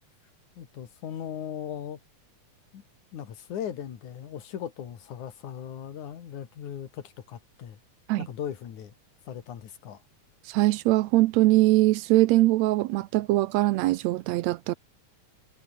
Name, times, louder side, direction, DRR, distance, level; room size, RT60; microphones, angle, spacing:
voice 1, 0.6-2.0 2.7-2.8 3.1-7.8 8.2-8.9 9.3-10.0, left 9 dB, 75° left, 3.5 m, -38 dB
voice 2, 10.5-14.7, right 17 dB, 75° right, 1.7 m, -22 dB
omnidirectional pair, 3.5 m